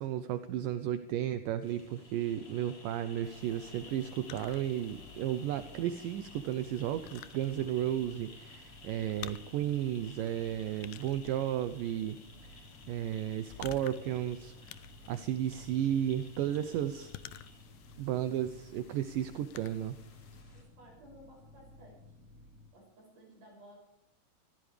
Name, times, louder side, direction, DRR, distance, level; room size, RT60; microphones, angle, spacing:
voice 1, 0.0-12.6 12.9-14.7 15.1-17.1 18.0-20.0, right 11 dB, 75° right, 10 dB, 2.1 m, -33 dB
sound 1, 1.6-20.6, left 3 dB, 45° left, 4.9 m, -55 dB
sound 2, 3.2-20.4, left 13 dB, 75° left, 2.2 m, -53 dB
sound 3, 3.2-22.7, equal, 25° right, 2.7 m, -56 dB
voice 2, 20.5-22.0 22.4-23.8, equal, 55° right, -1 dB, 8.2 m, -57 dB
24.5 x 15.5 x 3.4 m, 0.83 s
omnidirectional pair, 4.5 m